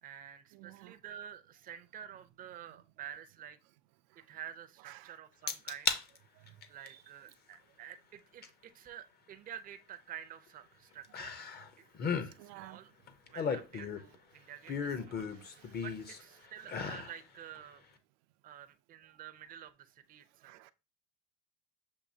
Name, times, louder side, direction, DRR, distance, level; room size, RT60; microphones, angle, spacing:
voice 1, 0.0-3.6 4.1-6.0 6.7-11.3 12.0-12.9 13.3-15.3 15.8-17.8 18.4-20.6, right 9 dB, 25° right, 0.4 m, -49 dB
voice 2, 0.5-1.0 4.9-5.1 6.9-7.0 12.4-12.8 15.2-15.7 20.4-20.7, right 16 dB, 80° right, 0.5 m, -53 dB
sound 1, 5.5-6.0 6.5-6.9 8.4-8.5 11.1-11.7 11.9-12.3 13.1-14.1 14.7-16.2 16.6-17.1 17.6-17.7, left 6 dB, 25° left, 0.5 m, -35 dB
6.9 x 2.7 x 2.7 m
supercardioid pair, 125°, 36 cm